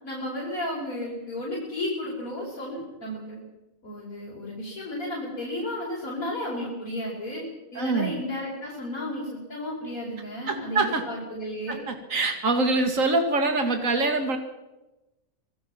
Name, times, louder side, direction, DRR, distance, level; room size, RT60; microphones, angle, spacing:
voice 1, 0.0-3.4 3.8-7.4 7.7-11.8, left 1 dB, 85° left, -6 dB, 5.5 m, -33 dB
voice 2, 7.8-8.1 10.5-11.0 11.7-14.4, right 3 dB, 70° right, 6 dB, 2.5 m, -24 dB
26.0 x 17.5 x 5.9 m, 1.0 s
omnidirectional pair, 1.4 m